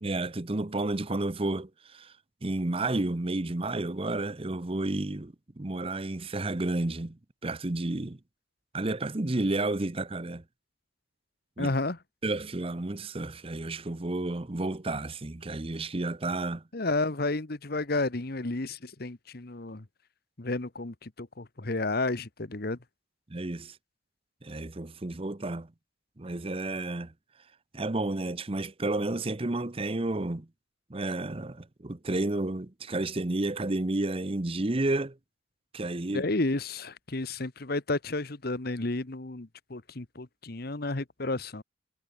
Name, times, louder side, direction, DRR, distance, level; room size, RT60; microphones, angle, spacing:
voice 1, 0.0-2.1 2.4-8.2 8.7-10.4 11.6-11.7 12.2-16.6 23.3-23.8 24.4-25.7 26.2-27.1 27.7-30.5 30.9-35.2 35.7-36.3, right 2 dB, 30° right, 0.8 m, -31 dB
voice 2, 11.6-12.0 16.7-19.8 20.4-22.8 36.1-41.6, left 2 dB, 55° left, 1.3 m, -31 dB
head